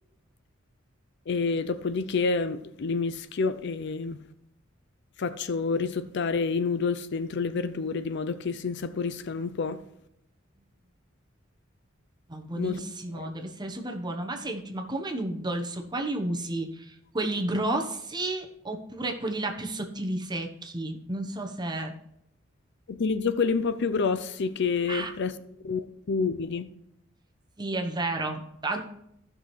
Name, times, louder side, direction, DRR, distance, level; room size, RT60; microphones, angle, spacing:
voice 1, 1.3-4.2 5.2-9.8 12.6-12.8 13.1-13.3 22.9-25.3 25.6-26.7, left 4 dB, 60° left, 0.5 m, -28 dB
voice 2, 12.3-21.9 24.9-25.1 27.6-28.9, right 2 dB, 20° right, 1.1 m, -32 dB
15.0 x 6.1 x 3.2 m
head